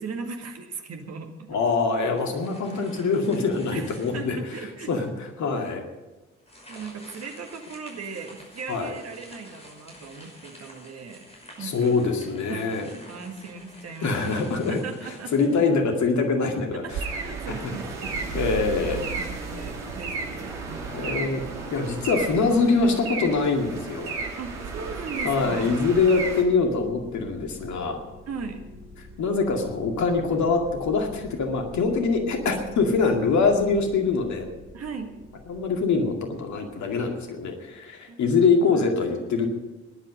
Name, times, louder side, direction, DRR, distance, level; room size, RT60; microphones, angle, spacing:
voice 1, 0.0-1.6 3.7-4.9 6.7-11.2 11.6-12.0 12.5-14.1 14.7-15.3 16.8-16.9 17.2-18.7 19.2-21.1 24.4-25.8 28.3-28.6 34.7-35.1 38.1-38.2, right 5 dB, 45° right, 4 dB, 2.0 m, -38 dB
voice 2, 1.5-5.8 8.7-8.9 11.6-12.9 14.0-16.8 17.5-17.7 18.3-19.1 20.9-21.4 21.7-24.2 25.2-28.0 29.2-34.5 35.5-39.5, left 4 dB, 55° left, 3 dB, 2.3 m, -24 dB
sound 1, 1.9-4.5 5.0-5.1 6.4-16.2, equal, 15° left, 5.8 m, -49 dB
sound 2, 16.9-26.4, right 4 dB, 70° right, 2.0 m, -33 dB
sound 3, 25.5-37.7, left 2 dB, 80° left, 5.0 m, -47 dB
18.0 x 11.0 x 5.0 m, 1.1 s
figure-of-eight pair, 45°, 35 cm